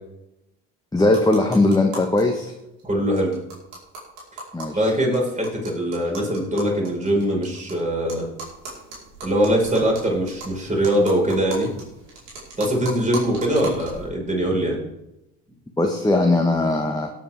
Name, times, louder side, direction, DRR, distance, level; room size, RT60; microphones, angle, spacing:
voice 1, 0.9-2.5 4.5-4.9 15.8-17.1, left 2 dB, 10° left, 2 dB, 1.5 m, -19 dB
sound 1, 1.1-2.2 2.5-2.6 2.8-2.9 3.2-7.7 8.1-14.1, right 2 dB, 85° right, 4.6 m, -37 dB
voice 2, 2.8-3.3 4.7-8.3 9.2-11.7 12.6-14.8, equal, 20° right, -2 dB, 5.3 m, -22 dB
17.5 x 8.6 x 3.7 m, 0.91 s
hypercardioid pair, 65°, 36 cm